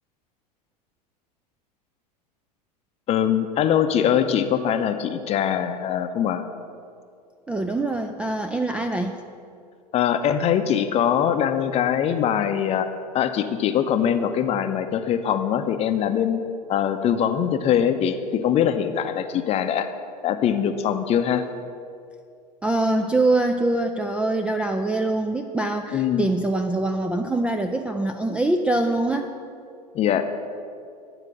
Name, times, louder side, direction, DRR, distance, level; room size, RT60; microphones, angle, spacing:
voice 1, 3.1-6.4 9.9-12.9 13.1-16.4 16.7-19.9 20.2-21.5 25.9-26.3 29.9-30.2, left 9 dB, 30° left, 9 dB, 0.6 m, -22 dB
voice 2, 7.5-9.2 22.6-29.3, right 2 dB, 5° right, 4 dB, 0.3 m, -24 dB
9.6 x 4.9 x 7.6 m, 2.4 s
figure-of-eight pair, 85°, 21 cm